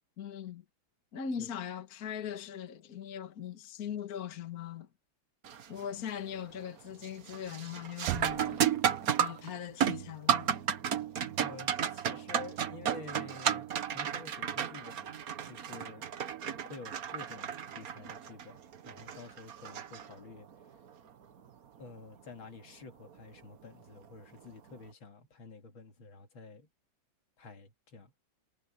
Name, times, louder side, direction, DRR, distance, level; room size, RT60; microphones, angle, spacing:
voice 1, 0.2-0.6 1.1-4.9 5.7-8.6 9.2-10.5, left 8 dB, 50° left, 1.8 m, -40 dB
sound 1, 5.4-5.8 6.2-6.7 7.0-20.5 23.0-23.1 24.0-24.2, right 8 dB, 50° right, 1.4 m, -33 dB
Knock, 8.1-9.0, right 17 dB, 85° right, 1.4 m, -38 dB
voice 2, 11.4-15.2 15.5-16.1 16.7-20.5 21.8-26.7 27.4-28.1, left 4 dB, 70° left, 3.0 m, -50 dB
omnidirectional pair, 2.3 m